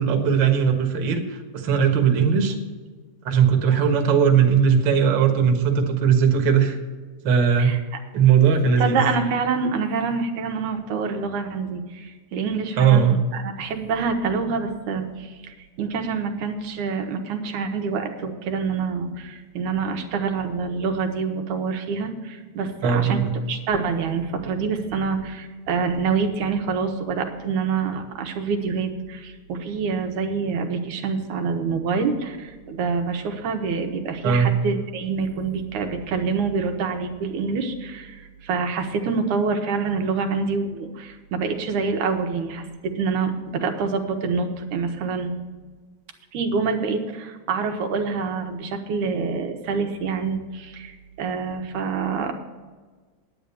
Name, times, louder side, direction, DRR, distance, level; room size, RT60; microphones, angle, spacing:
voice 1, 0.0-2.5 3.2-6.8 7.2-7.7 8.1-9.0 12.8-13.2 22.8-23.3 34.2-34.5, right 7 dB, 45° right, 3 dB, 1.7 m, -19 dB
voice 2, 8.8-23.2 23.5-45.3 46.3-52.4, right 5 dB, 90° right, 4 dB, 2.6 m, -26 dB
10.5 x 9.1 x 6.9 m, 1.4 s
omnidirectional pair, 3.4 m